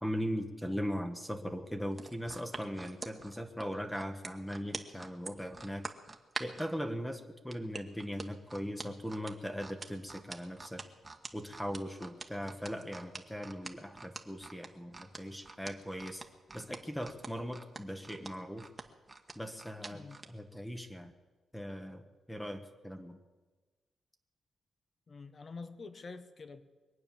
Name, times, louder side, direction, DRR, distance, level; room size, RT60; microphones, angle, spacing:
voice 1, 0.0-5.9 6.4-10.8 11.3-16.2 16.5-18.7 19.3-21.1 21.5-23.2, equal, 5° left, 6 dB, 1.2 m, -39 dB
sound 1, 1.9-6.7 7.5-20.3 20.8-20.9, right 3 dB, 20° right, 1.3 m, -45 dB
voice 2, 19.9-20.2 25.1-26.6, left 4 dB, 40° left, 11 dB, 1.2 m, -47 dB
22.5 x 8.8 x 7.1 m, 1.3 s
cardioid pair, 95°, 0 cm